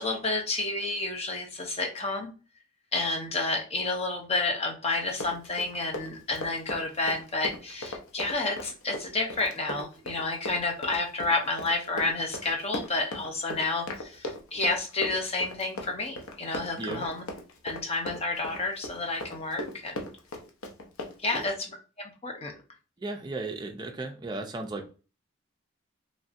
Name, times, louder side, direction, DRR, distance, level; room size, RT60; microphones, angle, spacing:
voice 1, 0.0-2.3 2.9-17.2 17.6-20.0 21.2-22.5, left 3 dB, 30° left, 2 dB, 0.6 m, -30 dB
Run, 5.0-21.5, left 1 dB, 90° left, 0.6 m, -38 dB
voice 2, 23.0-24.9, right 2 dB, 20° right, 3 dB, 0.4 m, -35 dB
3.1 x 2.6 x 2.5 m, 0.34 s
head